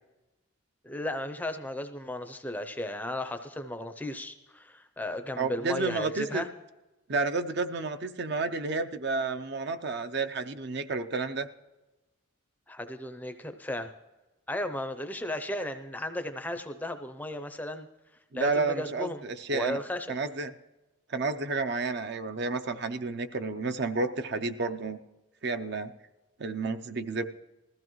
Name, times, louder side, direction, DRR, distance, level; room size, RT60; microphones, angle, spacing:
voice 1, 0.8-6.5 12.7-13.9 14.5-17.9 18.3-19.2 19.5-20.1, left 1 dB, 10° left, 8 dB, 0.5 m, -35 dB
voice 2, 5.4-6.4 7.1-11.5 18.3-19.8 20.1-20.5 21.1-25.0 25.4-25.9 26.4-27.2, right 3 dB, 50° right, 9 dB, 0.6 m, -31 dB
20.0 x 14.5 x 3.1 m, 1.1 s
head